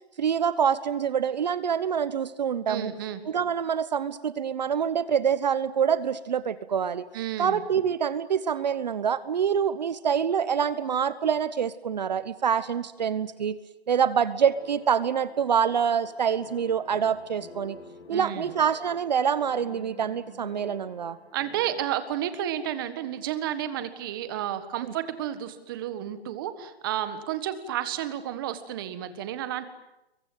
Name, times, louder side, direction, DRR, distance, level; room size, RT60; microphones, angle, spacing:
voice 1, 0.2-2.9 3.3-7.0 7.4-13.6 13.9-17.8 18.1-21.2 24.8-24.9, right 7 dB, 40° right, 15 dB, 1.0 m, -26 dB
voice 2, 2.7-3.2 7.1-7.6 18.1-18.5 21.3-29.7, right 11 dB, 20° right, 11 dB, 1.6 m, -31 dB
sound 1, 14.4-21.9, left 4 dB, 85° left, 3.4 m, -49 dB
27.5 x 23.0 x 9.3 m, 0.94 s
hypercardioid pair, 170°, 32 cm